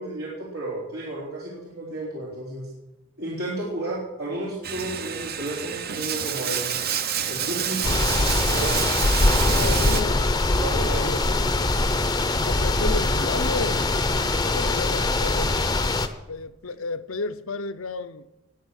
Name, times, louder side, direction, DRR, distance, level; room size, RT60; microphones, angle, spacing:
voice 1, 0.0-2.7 3.2-6.7 7.3-8.8 9.2-10.0 10.6-11.1, right 1 dB, 80° right, 3.9 m, -32 dB
Bathtub (filling or washing), 4.6-10.0, right 8 dB, 45° right, 0.8 m, -28 dB
sound 1, 7.8-16.1, left 2 dB, 15° left, 0.7 m, -22 dB
voice 2, 9.5-10.5 10.7-11.2 12.5-14.1 14.4-15.6 16.3-18.3, left 3 dB, 65° left, 0.7 m, -32 dB
20.0 x 8.0 x 6.5 m
head